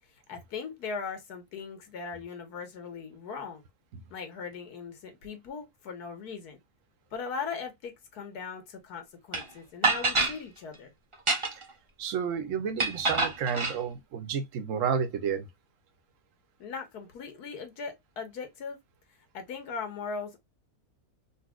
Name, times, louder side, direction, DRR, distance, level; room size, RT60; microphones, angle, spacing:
voice 1, 0.3-3.6 4.1-6.6 7.1-10.9 16.6-18.8 19.3-20.4, left 5 dB, 90° left, 1.5 m, -39 dB
sound 1, 9.3-9.4 9.8-10.4 11.1-11.7 12.8-13.8, right 3 dB, 30° right, 0.6 m, -26 dB
voice 2, 12.0-15.5, right 7 dB, 65° right, 1.0 m, -31 dB
4.0 x 2.6 x 2.2 m
omnidirectional pair, 1.6 m